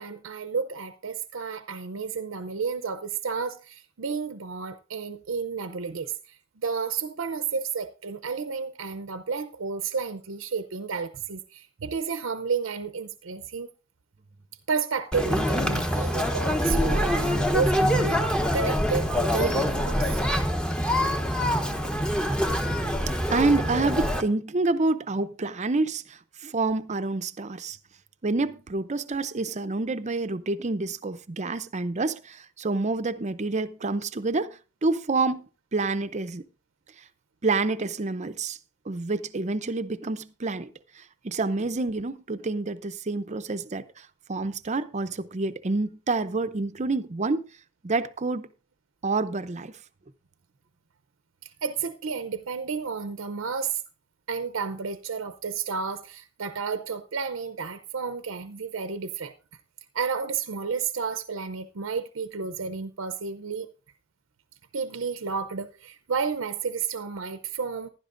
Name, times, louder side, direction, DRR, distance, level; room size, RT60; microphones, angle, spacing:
voice 1, 0.0-13.7 14.7-20.2 51.4-53.8 54.3-59.3 59.9-63.7 64.7-67.9, right 5 dB, 75° right, 0.6 m, -31 dB
Conversation, 15.1-24.2, equal, 5° left, 1.0 m, -25 dB
voice 2, 23.3-27.8 28.2-35.5 35.7-36.4 37.4-38.6 38.9-47.4 47.8-48.5 49.0-49.7, right 3 dB, 35° right, 0.6 m, -28 dB
15.5 x 11.5 x 2.6 m
head